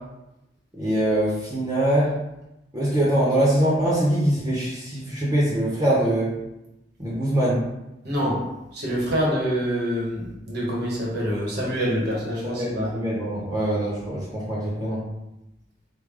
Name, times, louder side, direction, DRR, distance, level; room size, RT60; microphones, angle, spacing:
voice 1, 0.7-2.1 2.7-6.3 7.0-7.6 12.4-15.0, right 1 dB, 20° right, -7 dB, 0.8 m, -23 dB
voice 2, 8.0-8.4 8.7-12.9, equal, 65° right, -5 dB, 1.2 m, -26 dB
3.4 x 2.2 x 3.5 m, 0.92 s
head